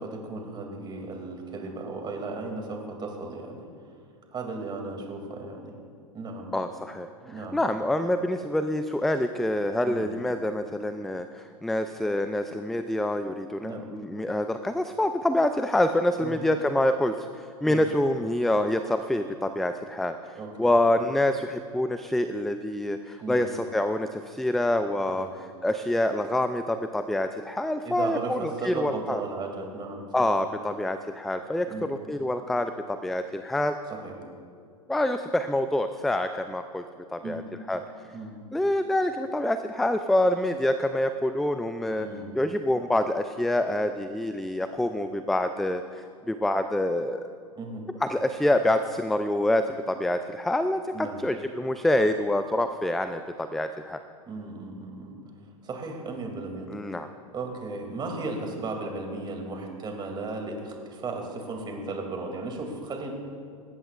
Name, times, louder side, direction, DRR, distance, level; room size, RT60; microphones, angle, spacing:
voice 1, 0.0-3.7 4.3-5.7 6.1-6.5 7.2-7.6 9.8-10.1 13.6-13.9 16.2-16.4 17.6-17.9 20.4-20.8 23.2-23.4 25.1-25.3 27.8-30.4 31.7-31.9 33.9-34.2 37.2-37.4 38.1-38.4 42.0-42.3 47.6-47.9 50.9-51.2 54.3-55.2 55.6-56.7 57.3-63.1, right 3 dB, 25° right, 2 dB, 2.6 m, -35 dB
voice 2, 6.5-25.3 25.6-29.2 30.1-33.8 34.9-36.8 37.1-37.4 37.7-37.8 38.5-42.1 42.3-47.3 48.0-54.0 56.7-57.1, left 1 dB, ahead, 9 dB, 0.4 m, -26 dB
19.0 x 16.5 x 2.5 m, 2.2 s
hypercardioid pair, 100°, 19 cm